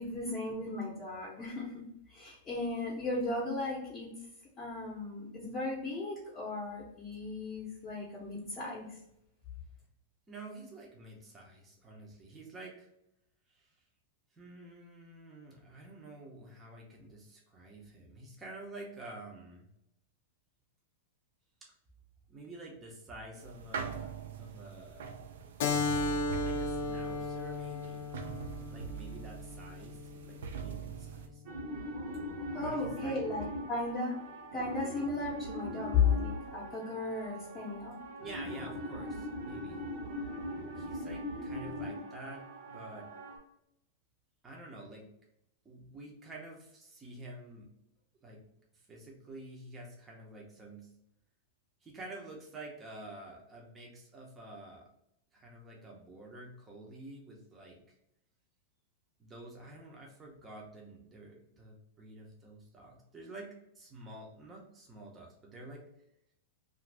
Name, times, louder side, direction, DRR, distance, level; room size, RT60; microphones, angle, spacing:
voice 1, 0.0-4.1 4.6-9.0 32.5-34.2 34.5-38.0, left 4 dB, 20° left, -6 dB, 0.8 m, -35 dB
voice 2, 10.3-12.9 13.5-13.7 14.3-19.7 21.6-21.7 22.3-24.1 24.4-25.2 26.4-28.1 28.7-31.4 32.6-33.2 38.2-39.8 40.7-43.1 44.4-45.1 45.6-47.7 48.2-48.4 48.7-50.9 51.8-54.9 55.3-58.0 59.2-65.8, right 2 dB, 15° right, -1 dB, 0.7 m, -49 dB
sound 1, 23.3-31.3, right 7 dB, 80° right, 0.4 m, -42 dB
Keyboard (musical), 25.6-30.7, left 3 dB, 60° left, 0.4 m, -35 dB
sound 2, 31.4-43.4, equal, 65° right, 0.9 m, -41 dB
2.5 x 2.5 x 3.3 m, 0.78 s
supercardioid pair, 155°, 0 cm